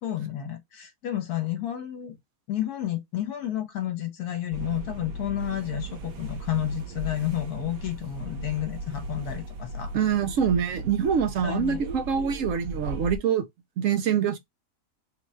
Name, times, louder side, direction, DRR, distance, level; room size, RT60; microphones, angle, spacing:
voice 1, 0.0-2.2 2.5-9.9 11.4-11.8, left 12 dB, 65° left, 1.3 m, -31 dB
sound 1, 4.5-13.2, right 1 dB, 80° right, 1.4 m, -37 dB
voice 2, 9.9-13.4 13.8-14.4, right 8 dB, 65° right, 0.8 m, -25 dB
3.9 x 2.3 x 4.2 m
omnidirectional pair, 1.8 m